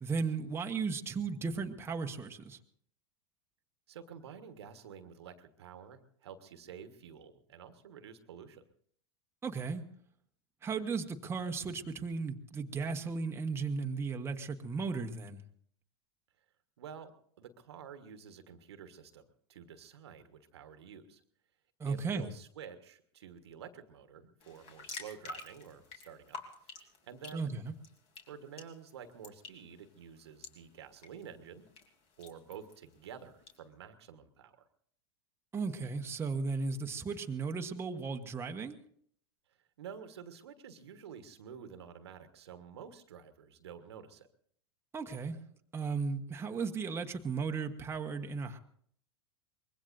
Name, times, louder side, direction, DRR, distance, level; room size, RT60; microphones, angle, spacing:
voice 1, 0.0-2.6 9.4-9.8 10.6-15.4 21.8-22.3 27.3-27.7 35.5-38.8 44.9-45.4 45.7-48.6, right 4 dB, 15° right, 4 dB, 1.2 m, -35 dB
voice 2, 3.9-8.7 16.8-17.1 17.4-21.2 21.8-26.4 26.6-27.5 28.2-31.6 32.2-34.7 39.8-44.3, right 7 dB, 70° right, 9 dB, 1.4 m, -50 dB
sound 1, 24.4-33.6, left 3 dB, 40° left, 3.3 m, -51 dB
24.0 x 21.0 x 2.6 m, 0.62 s
hypercardioid pair, 90°, 14 cm